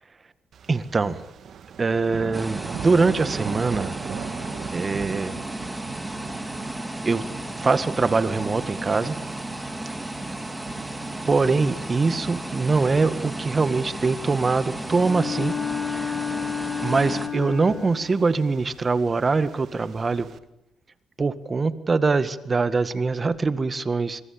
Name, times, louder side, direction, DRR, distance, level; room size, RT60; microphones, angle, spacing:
sound 1, 0.5-20.4, right 8 dB, 60° right, 1.9 m, -41 dB
voice 1, 0.7-1.2 1.8-3.9 4.7-5.4 7.0-7.2 7.6-9.2 11.3-15.5 15.9-16.1 16.8-20.3 21.2-24.2, right 4 dB, 30° right, 12 dB, 1.8 m, -23 dB
sound 2, 2.3-17.3, right 1 dB, 10° right, 3.2 m, -34 dB
Bowed string instrument, 15.0-18.1, left 7 dB, 15° left, 3.7 m, -30 dB
25.5 x 24.0 x 8.8 m, 0.83 s
cardioid pair, 90°, 0 cm